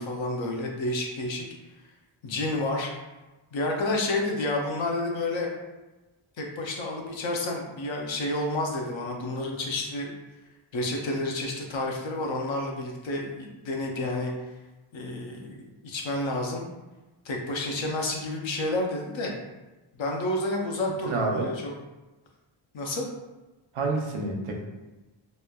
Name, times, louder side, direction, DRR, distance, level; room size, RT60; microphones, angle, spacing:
voice 1, 0.0-1.4 2.2-2.9 3.5-5.5 6.4-10.1 10.7-14.3 14.9-16.7 17.2-19.3 19.9-21.7 22.7-23.1, left 2 dB, 65° left, 0 dB, 0.6 m, -30 dB
voice 2, 21.1-21.5 23.7-24.6, right 3 dB, 85° right, 1 dB, 0.6 m, -28 dB
3.0 x 2.1 x 2.2 m, 1.1 s
wide cardioid pair, 130°, 49 cm